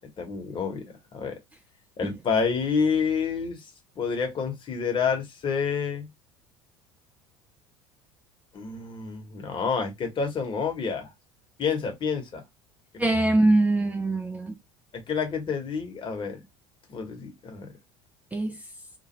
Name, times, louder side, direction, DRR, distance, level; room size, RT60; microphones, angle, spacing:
voice 1, 0.2-0.8 1.1-1.4 2.0-3.6 4.0-6.1 8.5-11.1 11.6-12.4 12.9-13.0 14.9-16.4 16.9-17.7, left 5 dB, 30° left, 1.0 m, -28 dB
voice 2, 13.0-14.6 18.3-18.6, right 2 dB, 10° right, 0.4 m, -23 dB
3.0 x 2.2 x 3.1 m
figure-of-eight pair, 65°, 15 cm